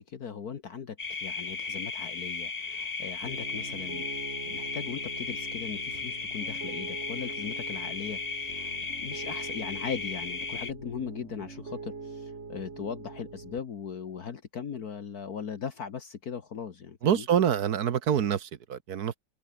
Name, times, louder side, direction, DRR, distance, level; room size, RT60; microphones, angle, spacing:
voice 1, 0.0-17.2, left 7 dB, 60° left, 1.9 m, -39 dB
sound 1, 1.0-10.7, left 4 dB, 25° left, 1.0 m, -35 dB
Piano, 3.2-13.6, right 4 dB, 40° right, 2.3 m, -43 dB
voice 2, 17.0-19.2, right 9 dB, 60° right, 1.5 m, -26 dB
omnidirectional pair, 1.9 m